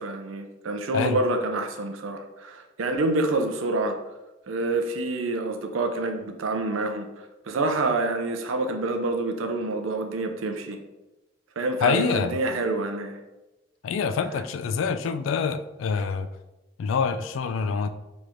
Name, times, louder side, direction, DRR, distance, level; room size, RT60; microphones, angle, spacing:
voice 1, 0.0-4.0 4.5-10.8 11.6-13.2, right 2 dB, 90° right, 5 dB, 0.5 m, -27 dB
voice 2, 11.8-12.4 13.8-16.3 16.8-17.9, left 5 dB, 80° left, 11 dB, 0.3 m, -26 dB
4.8 x 3.0 x 2.5 m, 1.0 s
head